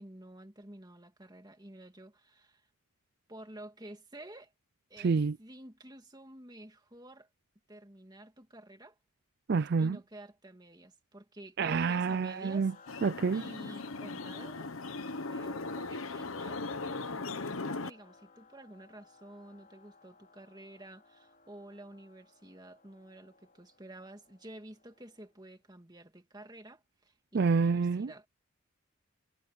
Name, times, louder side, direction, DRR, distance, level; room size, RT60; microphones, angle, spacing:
voice 1, 0.0-2.7 3.3-4.5 4.9-7.3 7.7-9.0 9.8-14.7 15.3-28.3, right 1 dB, 20° right, 2.1 m, -51 dB
voice 2, 5.0-5.4 9.5-10.0 11.6-12.7 13.0-13.4 27.3-28.1, right 5 dB, 50° right, 0.4 m, -28 dB
sound 1, 12.0-25.4, left 4 dB, 40° left, 4.1 m, -60 dB
sound 2, 12.9-17.9, left 3 dB, 70° left, 1.2 m, -38 dB
head